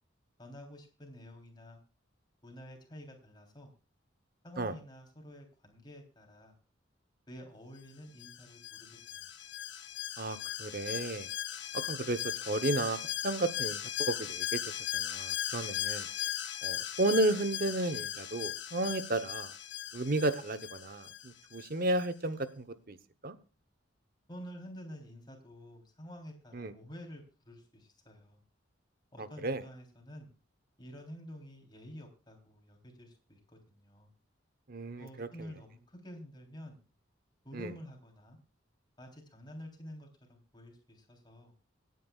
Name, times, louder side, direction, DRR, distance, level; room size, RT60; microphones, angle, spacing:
voice 1, 0.4-1.8 2.4-3.7 4.4-6.5 7.3-9.3 24.3-28.4 29.1-30.3 30.8-34.1 35.0-36.8 37.4-38.4 39.0-41.5, equal, 20° left, 2 dB, 3.4 m, -49 dB
Alarm, 8.2-21.7 22.0-22.1, left 11 dB, 65° left, 1.5 m, -38 dB
voice 2, 10.2-11.3 11.7-14.6 14.9-16.3 16.6-19.5 19.9-23.0 23.2-23.3 26.5-26.7 29.2-29.6 34.7-35.5 37.5-37.7, right 2 dB, 50° right, 14 dB, 0.9 m, -33 dB
25.5 x 9.3 x 2.3 m, 0.32 s
head